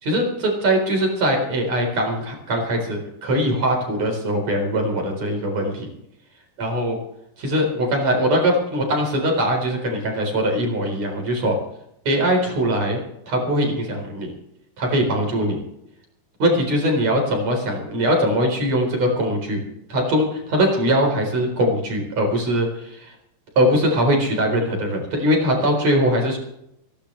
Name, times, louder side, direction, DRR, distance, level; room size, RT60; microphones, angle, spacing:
voice 1, 0.0-5.9 6.6-7.0 7.4-11.6 12.0-13.0 13.3-14.3 14.8-15.6 16.4-23.1 23.6-26.4, equal, 40° right, 2 dB, 5.0 m, -21 dB
26.5 x 12.0 x 3.3 m, 0.78 s
omnidirectional pair, 4.9 m